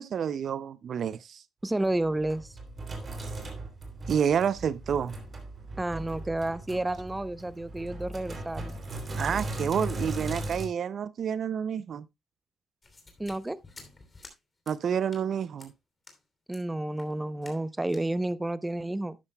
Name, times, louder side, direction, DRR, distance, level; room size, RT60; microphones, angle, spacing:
voice 1, 0.0-1.4 4.1-5.1 9.2-12.1 14.7-15.7, right 7 dB, 60° right, 0.4 m, -29 dB
voice 2, 1.6-2.5 5.8-8.8 13.2-13.6 16.5-19.2, right 1 dB, 10° right, 0.6 m, -30 dB
Sink (filling or washing), 1.8-10.7, right 2 dB, 35° right, 2.9 m, -38 dB
sound 1, 12.8-14.4 14.7-14.8 15.1-15.3 15.6-15.7 16.0-16.2 16.5-16.6 17.0-17.1 17.4-17.6 17.9-18.1, left 3 dB, 30° left, 2.9 m, -51 dB
12.0 x 9.7 x 2.2 m
cardioid pair, 90°, 0 cm